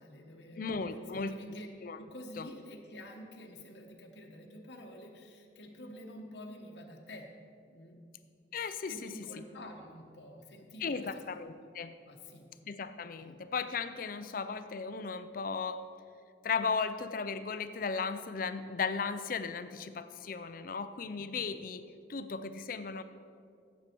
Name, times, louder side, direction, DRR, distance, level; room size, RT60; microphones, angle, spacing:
voice 1, 0.0-0.7 1.1-1.7 2.0-7.3 7.7-8.0 8.9-11.2 12.1-12.5 13.1-13.4 21.0-21.2, left 1 dB, 65° left, 1 dB, 1.1 m, -49 dB
voice 2, 0.6-1.4 1.8-2.0 2.4-2.5 8.5-9.1 10.8-11.9 12.7-15.9 16.4-21.8 22.1-23.0, left 5 dB, 50° left, 11 dB, 0.5 m, -36 dB
15.0 x 7.4 x 4.5 m, 2.3 s
head